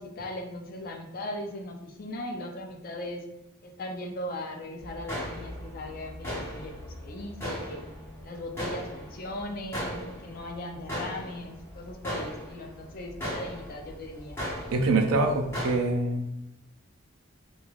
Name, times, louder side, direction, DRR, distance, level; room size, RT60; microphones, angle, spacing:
voice 1, 0.0-3.2 3.6-6.7 7.0-7.8 8.2-14.4, left 1 dB, 45° left, 4 dB, 0.4 m, -38 dB
sound 1, 4.8-15.8, equal, 10° left, 0.8 m, -38 dB
voice 2, 14.7-16.3, right 2 dB, 90° right, 3 dB, 0.4 m, -25 dB
3.1 x 2.2 x 2.3 m, 0.87 s
head